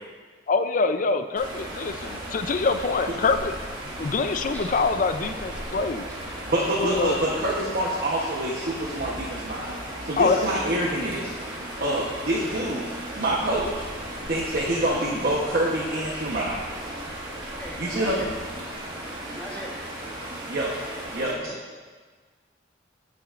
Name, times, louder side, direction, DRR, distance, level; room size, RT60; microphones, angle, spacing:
voice 1, 0.5-3.5 4.0-6.1 6.8-7.2 10.2-10.8 18.1-18.4, left 4 dB, 45° left, 9 dB, 0.5 m, -25 dB
sound 1, 1.4-21.3, right 1 dB, 25° right, 1.7 m, -36 dB
voice 2, 4.5-4.9 6.1-6.2 6.6-6.8 8.6-8.8 12.4-12.5 12.9-13.0 15.7-15.8 17.6-18.3 19.2-19.7 21.4-21.6, equal, 10° left, -3 dB, 1.3 m, -41 dB
voice 3, 6.5-9.7 10.0-11.3 11.8-12.9 13.2-13.9 14.3-16.6 17.8-18.3 20.5-20.7 21.1-21.3, right 1 dB, 55° right, -5 dB, 1.0 m, -26 dB
15.5 x 5.8 x 2.5 m, 1.4 s
head